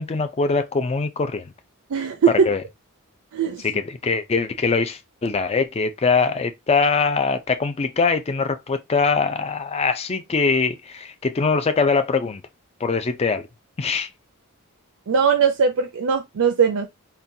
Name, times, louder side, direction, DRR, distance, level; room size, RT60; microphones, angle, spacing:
voice 1, 0.0-1.5 2.5-2.6 3.6-12.4 12.8-13.5 13.8-14.1, left 4 dB, 30° left, 0.4 m, -22 dB
voice 2, 1.9-2.5 3.3-3.7 15.1-16.9, right 6 dB, 65° right, 0.5 m, -20 dB
3.8 x 2.2 x 2.7 m
head